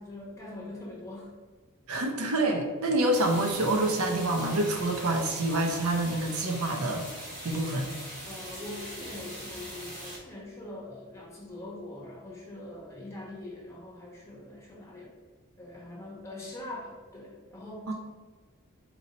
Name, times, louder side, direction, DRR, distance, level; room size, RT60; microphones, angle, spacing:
voice 1, 0.0-1.3 2.0-2.1 8.2-15.1 15.6-17.9, left 1 dB, 15° left, -4 dB, 1.2 m, -43 dB
voice 2, 1.9-7.0 7.4-7.9 17.9-18.0, right 1 dB, 75° right, 3 dB, 0.6 m, -27 dB
sound 1, 3.1-10.2, right 1 dB, 35° right, 1.5 m, -41 dB
4.4 x 2.8 x 4.1 m, 1.4 s
head